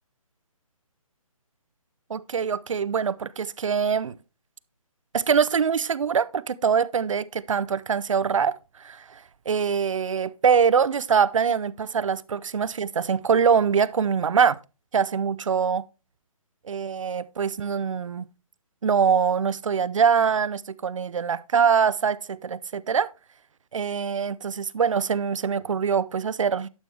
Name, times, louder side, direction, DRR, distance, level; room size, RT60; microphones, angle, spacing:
voice 1, 2.1-4.2 5.1-14.6 14.9-15.8 16.6-18.3 18.8-23.1 23.7-26.7, right 6 dB, 60° right, 0.5 m, -23 dB
11.5 x 6.1 x 3.3 m
hypercardioid pair, 175°, 18 cm